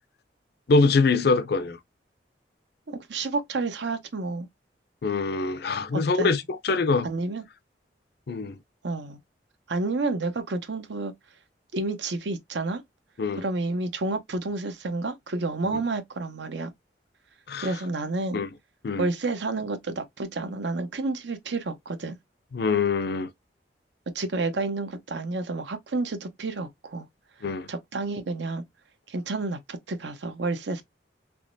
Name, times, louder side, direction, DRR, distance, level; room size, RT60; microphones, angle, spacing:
voice 1, 0.7-1.8 5.0-7.1 8.3-8.6 13.2-13.4 15.7-15.8 17.5-17.7 18.3-18.5 18.8-19.1 22.5-23.3 27.4-27.7, left 4 dB, 60° left, 0.5 m, -24 dB
voice 2, 2.9-4.5 5.9-6.3 7.0-7.4 8.8-9.2 9.7-11.1 11.7-12.8 13.4-16.7 17.6-18.4 19.0-22.2 24.1-27.1 27.7-28.6 29.1-30.8, right 3 dB, 75° right, 0.7 m, -30 dB
3.5 x 3.0 x 2.5 m
head